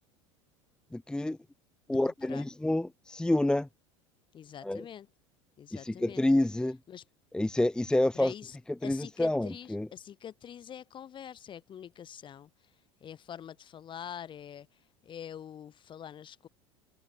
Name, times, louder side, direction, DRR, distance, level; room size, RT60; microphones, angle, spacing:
voice 1, 0.9-1.4 1.9-3.7 4.6-4.8 5.7-6.8 7.3-8.3 8.8-9.9, left 1 dB, 5° left, 0.9 m, -28 dB
voice 2, 1.9-2.5 4.3-5.1 5.6-6.2 6.9-7.0 8.1-8.6 8.8-12.5 13.0-14.7 15.0-16.5, left 9 dB, 30° left, 2.5 m, -45 dB
figure-of-eight pair, 75°, 16 cm